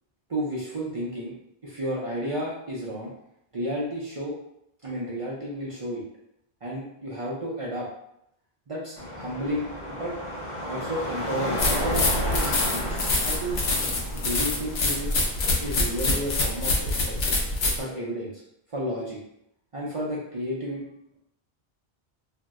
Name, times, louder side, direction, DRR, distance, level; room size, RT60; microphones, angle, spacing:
voice 1, 0.3-1.3 1.6-3.1 3.5-4.3 4.8-6.0 6.6-7.9 8.7-10.1 10.6-12.1 12.3-13.0 13.2-13.6 14.1-15.3 15.6-17.2 17.8-18.4 18.7-19.2 19.7-20.8, equal, 40° right, -6 dB, 0.5 m, -32 dB
Car passing by / Traffic noise roadway noise / Engine, 9.0-16.3, equal, 50° left, 0.9 m, -33 dB
sound 1, 11.6-17.8, left 2 dB, 80° left, 0.9 m, -25 dB
2.7 x 2.0 x 3.4 m, 0.78 s
omnidirectional pair, 1.1 m